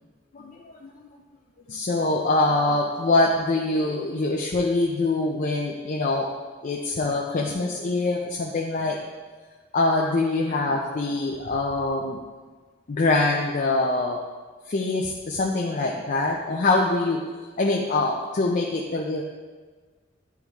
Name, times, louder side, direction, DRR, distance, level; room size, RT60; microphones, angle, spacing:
voice 1, 0.3-0.9 1.7-6.3 6.6-9.0 9.7-12.2 12.9-14.2 14.7-17.2 17.6-19.2, left 2 dB, 45° left, -1 dB, 0.5 m, -24 dB
9.6 x 3.5 x 3.0 m, 1.4 s
head